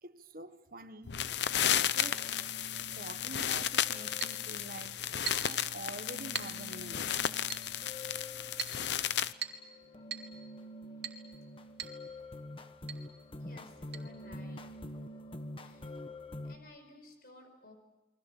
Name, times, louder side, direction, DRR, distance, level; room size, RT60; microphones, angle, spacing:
voice 1, 0.0-1.1 1.5-2.3 2.9-5.0 5.4-7.2, right 2 dB, 50° right, 1.3 m, -47 dB
sound 1, 1.1-9.3, left 10 dB, 75° left, 0.7 m, -33 dB
sound 2, 1.9-16.6, left 1 dB, 30° left, 1.3 m, -47 dB
Chink clink, 4.2-4.4 5.3-5.6 6.4-6.6 7.5-7.7 8.6-8.8 9.4-9.7 10.1-10.3 11.0-11.2 11.8-12.0 12.3-12.4 12.9-13.0 13.9-14.0, right 8 dB, 75° right, 2.5 m, -40 dB
voice 2, 13.4-14.8 15.6-15.9 16.4-17.7, left 1 dB, 55° left, 5.0 m, -56 dB
29.5 x 23.0 x 7.2 m
head